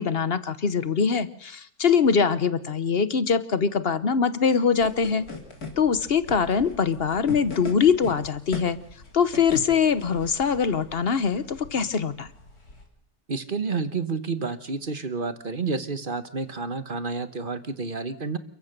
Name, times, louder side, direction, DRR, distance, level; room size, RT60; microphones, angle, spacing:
voice 1, 0.0-5.2 5.8-8.8 9.1-12.3, left 6 dB, 45° left, 14 dB, 1.1 m, -23 dB
sound 1, 4.8-12.9, left 3 dB, 75° left, 4.0 m, -40 dB
voice 2, 13.3-18.4, right 4 dB, 35° right, 12 dB, 1.3 m, -30 dB
29.5 x 14.5 x 6.7 m, 0.67 s
omnidirectional pair, 1.6 m